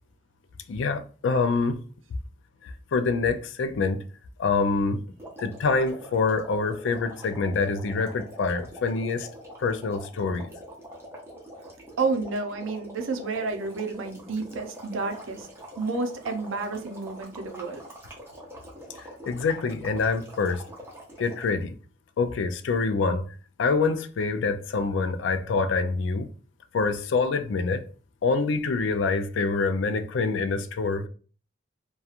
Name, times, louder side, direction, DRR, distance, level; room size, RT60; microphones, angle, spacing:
voice 1, 0.7-1.8 2.6-4.0 4.4-5.0 5.4-9.3 9.6-10.5 19.0-20.6 21.2-21.7 22.2-23.3 23.6-26.3 26.7-27.9 28.2-31.1, left 4 dB, 75° left, 0.4 m, -26 dB
sound 1, 5.2-21.6, equal, 10° right, 0.6 m, -44 dB
voice 2, 12.0-15.5 15.8-17.8, right 3 dB, 90° right, 0.5 m, -30 dB
2.8 x 2.3 x 2.4 m
head